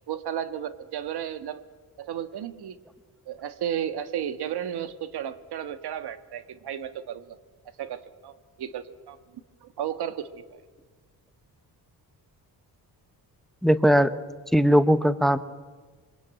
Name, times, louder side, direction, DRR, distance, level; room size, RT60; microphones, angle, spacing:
voice 1, 0.1-1.6 2.0-2.8 3.3-7.4 7.8-9.2 9.6-10.6, right 9 dB, 85° right, 11 dB, 1.5 m, -33 dB
voice 2, 13.6-14.2 14.5-15.4, equal, ahead, 13 dB, 0.7 m, -19 dB
27.5 x 23.5 x 8.9 m, 1.4 s
wide cardioid pair, 175°, 38 cm